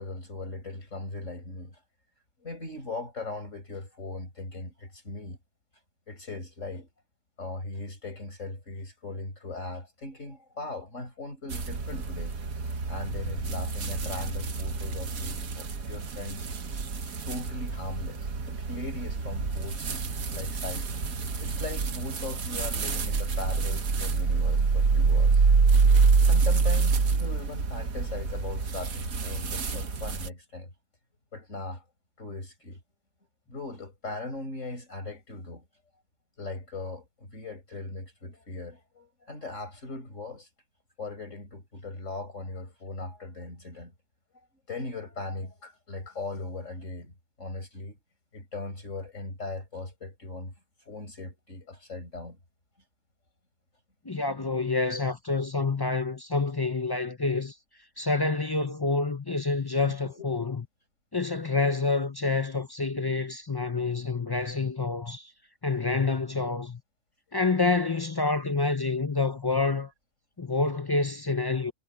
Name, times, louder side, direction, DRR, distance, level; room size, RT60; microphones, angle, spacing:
voice 1, 0.0-1.8 2.4-5.4 6.1-6.9 7.4-12.3 12.9-16.5 17.2-20.0 20.3-20.9 21.4-25.4 26.3-30.7 31.3-31.8 32.2-32.8 33.5-35.7 36.4-40.5 41.0-43.9 44.7-47.1 47.4-48.0 48.3-50.5 50.9-52.4 59.8-60.4, left 2 dB, 55° left, 6.4 m, -39 dB
sound 1, 11.5-30.3, right 4 dB, 75° right, 1.9 m, -27 dB
voice 2, 54.0-57.6 58.0-60.6 61.1-65.3 65.6-66.8 67.3-69.9 70.4-71.7, left 3 dB, 35° left, 0.3 m, -27 dB
omnidirectional pair, 1.5 m